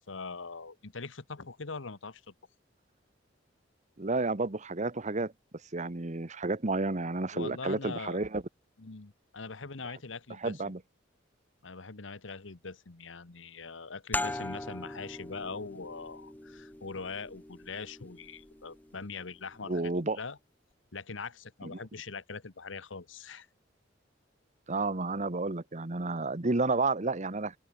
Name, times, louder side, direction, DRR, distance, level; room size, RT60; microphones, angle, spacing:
voice 1, 0.1-2.3 7.3-8.2 8.8-10.6 11.6-20.4 20.9-23.5, left 4 dB, 85° left, 1.3 m, -42 dB
voice 2, 4.0-5.3 5.7-8.4 10.4-10.8 19.7-20.2 24.7-27.5, right 3 dB, 40° right, 1.2 m, -31 dB
sound 1, 14.1-19.4, left 2 dB, 10° left, 0.9 m, -40 dB
open air
head